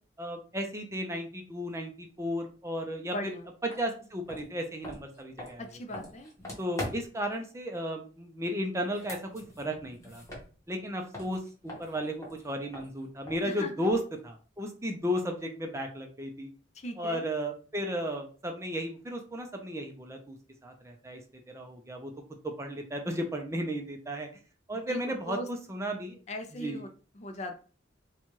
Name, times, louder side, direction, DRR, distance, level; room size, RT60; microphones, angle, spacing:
voice 1, 0.2-3.3 3.6-5.7 6.6-10.2 10.7-16.5 17.0-20.4 20.6-21.2 21.5-22.1 22.6-24.3 24.7-26.2 26.5-26.8, equal, 15° right, 3 dB, 0.5 m, -34 dB
voice 2, 3.1-3.5 5.6-6.3 13.4-13.8 16.7-17.3 24.9-25.5 26.3-26.9 27.2-27.6, left 1 dB, 40° left, 6 dB, 0.5 m, -39 dB
sound 1, 3.7-3.8 4.2-7.3 8.8-10.9 11.1-14.2, left 1 dB, 15° left, 1.0 m, -43 dB
4.3 x 2.3 x 2.9 m, 0.38 s
head